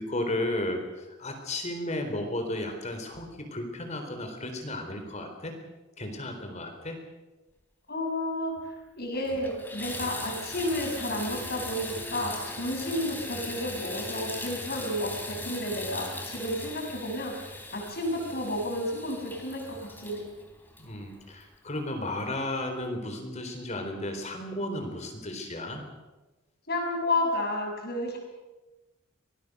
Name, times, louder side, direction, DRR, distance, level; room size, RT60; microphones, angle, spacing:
voice 1, 0.0-5.5 6.0-7.0 20.8-25.8, left 1 dB, 35° left, 5 dB, 4.0 m, -34 dB
voice 2, 7.9-17.3 17.7-20.2 26.7-28.2, left 1 dB, 50° left, 2 dB, 6.4 m, -31 dB
Water tap faucet / Bathtub (filling or washing), 8.6-8.7 9.1-21.5 22.2-22.3 22.8-22.9, left 2 dB, 10° left, 3.2 m, -39 dB
25.0 x 19.0 x 6.7 m, 1.1 s
head